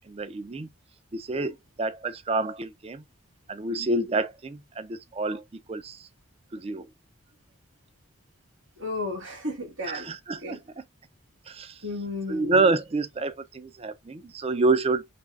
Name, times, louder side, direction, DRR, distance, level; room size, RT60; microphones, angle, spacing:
voice 1, 0.1-0.7 1.1-3.0 3.5-5.4 5.7-6.1 6.5-6.9 9.9-10.6 11.5-11.8 12.3-15.1, right 3 dB, 30° right, 0.4 m, -28 dB
voice 2, 8.8-10.1 10.4-10.6 11.8-12.6, left 2 dB, 60° right, 1.7 m, -33 dB
3.4 x 3.3 x 2.4 m
head